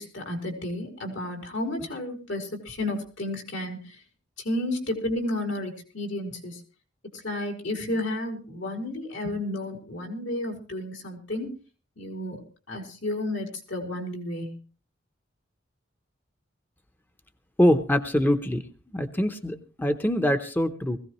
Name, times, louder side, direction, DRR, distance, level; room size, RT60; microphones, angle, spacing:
voice 1, 0.0-3.8 4.4-6.6 7.2-11.5 12.0-12.4 12.7-14.6, left 1 dB, 80° left, 3 dB, 4.2 m, -32 dB
voice 2, 17.6-18.6 18.9-21.0, equal, 10° left, 7 dB, 0.8 m, -24 dB
20.5 x 16.0 x 3.1 m, 0.35 s
head